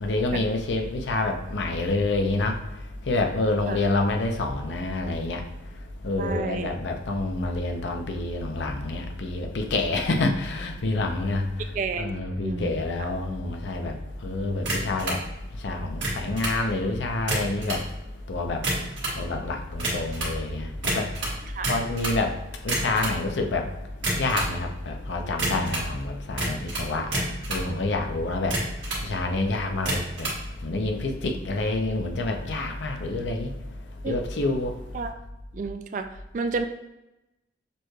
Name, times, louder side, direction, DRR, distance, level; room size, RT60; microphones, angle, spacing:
voice 1, 0.0-2.6 3.1-5.4 6.0-11.4 12.0-14.0 14.2-15.2 15.6-17.8 18.3-18.6 19.2-21.1 21.7-22.3 22.6-23.6 24.2-27.2 27.5-28.5 29.0-30.3 30.6-33.5 34.1-34.7, left 2 dB, 85° left, 4 dB, 0.6 m, -27 dB
voice 2, 6.2-6.7 11.7-12.7 21.5-21.7 34.0-34.2 34.9-35.1 35.5-36.6, right 4 dB, 45° right, 7 dB, 0.3 m, -31 dB
sound 1, 14.6-15.2 15.9-16.6 17.2-17.9 18.5-19.2 19.8-20.4 20.8-22.2 22.6-23.2 23.9-24.5 25.4-25.9 26.4-27.7 28.3-29.1 29.8-30.4, right 2 dB, 85° right, 1.6 m, -29 dB
6.7 x 3.1 x 2.3 m, 0.95 s
head